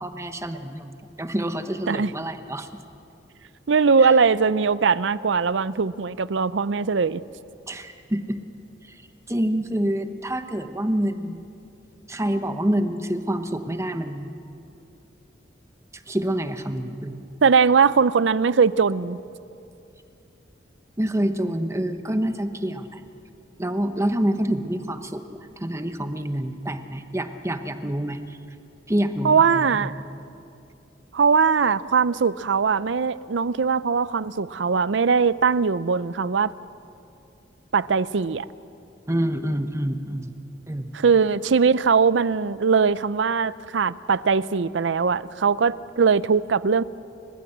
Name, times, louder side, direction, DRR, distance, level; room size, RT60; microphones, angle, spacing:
voice 1, 0.0-2.7 7.7-8.4 9.3-11.4 12.1-14.3 16.1-17.2 21.0-23.0 23.6-28.2 28.9-29.9 39.1-40.3 40.7-40.9, right 1 dB, 15° right, 8 dB, 1.1 m, -27 dB
voice 2, 3.7-7.2 17.4-19.2 29.2-29.9 31.1-36.5 37.7-38.5 40.9-46.8, right 5 dB, 90° right, 17 dB, 0.6 m, -20 dB
30.0 x 15.5 x 7.9 m, 2.6 s
head